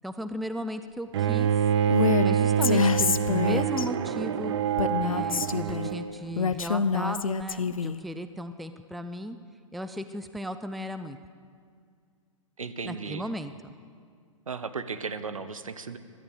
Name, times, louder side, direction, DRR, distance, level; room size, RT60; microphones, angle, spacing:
voice 1, 0.0-1.6 2.2-4.6 5.0-9.4 9.7-11.2 12.9-13.7, equal, ahead, 10 dB, 0.3 m, -36 dB
Bowed string instrument, 1.1-6.2, right 8 dB, 50° right, 0.7 m, -26 dB
Female speech woman speaking, 1.9-2.3 2.6-3.9 4.8-5.9 6.4-8.0, left 6 dB, 80° left, 0.6 m, -26 dB
voice 2, 12.6-13.2 14.5-16.0, right 5 dB, 80° right, 11 dB, 0.9 m, -35 dB
16.5 x 12.0 x 6.7 m, 2.1 s
figure-of-eight pair, 115°, 17 cm